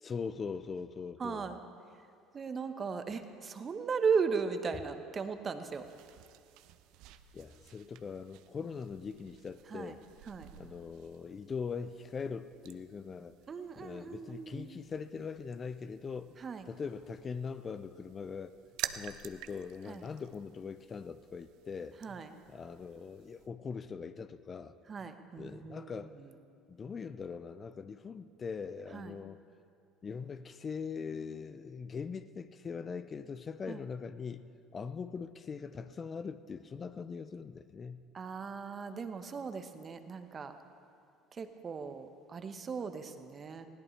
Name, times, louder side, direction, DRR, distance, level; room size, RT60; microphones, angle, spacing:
voice 1, 0.0-1.5 7.3-10.0 10.6-13.3 13.8-16.4 16.7-18.5 18.9-22.2 22.5-24.7 25.4-26.1 26.7-29.4 30.0-38.1, left 5 dB, 35° left, 13 dB, 0.5 m, -41 dB
voice 2, 1.2-1.6 2.3-5.8 9.7-9.9 10.3-10.5 13.5-14.7 16.4-16.6 19.9-20.0 22.0-22.3 24.9-25.9 26.2-26.3 28.9-29.2 33.7-33.8 38.1-40.5 41.3-43.7, right 5 dB, 35° right, 8 dB, 1.1 m, -37 dB
sound 1, 5.7-23.5, right 13 dB, 65° right, 0.5 m, -50 dB
19.5 x 17.0 x 3.3 m, 2.4 s
hypercardioid pair, 65°, 0 cm